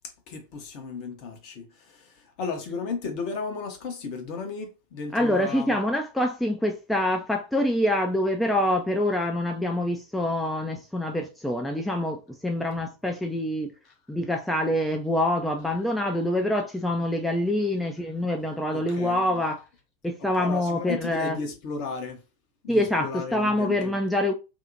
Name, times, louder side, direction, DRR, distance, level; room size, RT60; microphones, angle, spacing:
voice 1, 0.3-5.8 18.7-19.2 20.2-22.2 22.6-23.9, left 4 dB, 45° left, 0.8 m, -34 dB
voice 2, 5.1-13.7 14.1-19.6 20.0-21.4 22.7-24.3, left 1 dB, 5° left, 0.3 m, -26 dB
2.7 x 2.1 x 2.6 m
figure-of-eight pair, 90°, 0 cm